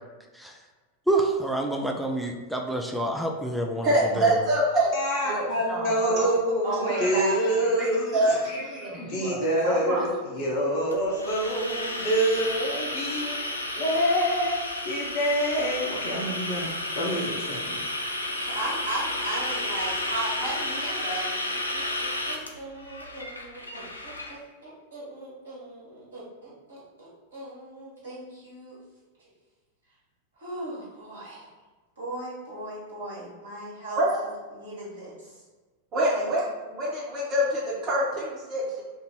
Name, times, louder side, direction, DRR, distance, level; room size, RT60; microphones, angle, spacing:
voice 1, 1.1-3.9 4.2-4.4, right 1 dB, ahead, 2 dB, 0.4 m, -27 dB
voice 2, 3.8-4.9 5.2-6.2 7.0-7.1 7.8-10.1 34.0-34.1 35.9-36.4 36.7-38.8, right 1 dB, 30° right, -5 dB, 1.2 m, -26 dB
voice 3, 4.9-8.6 9.0-14.6 14.8-17.8, equal, 45° left, -3 dB, 0.8 m, -26 dB
voice 4, 6.6-7.3 18.3-28.8 29.2-29.3 30.4-31.5 32.0-35.4 36.1-36.3, right 2 dB, 65° right, -7 dB, 1.4 m, -37 dB
sound 1, 10.9-24.3, left 1 dB, 85° left, 0.4 m, -32 dB
2.7 x 2.6 x 4.2 m, 1.3 s
figure-of-eight pair, 90°, 0 cm